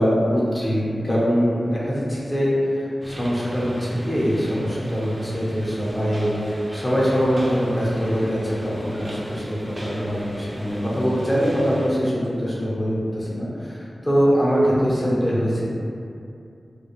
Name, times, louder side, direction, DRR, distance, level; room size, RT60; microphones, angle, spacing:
voice 1, 0.0-15.7, equal, 20° left, -7 dB, 0.7 m, -23 dB
sound 1, 3.0-11.9, equal, 25° right, 0.5 m, -36 dB
2.4 x 2.2 x 3.0 m, 2.5 s
wide cardioid pair, 90°, 0 cm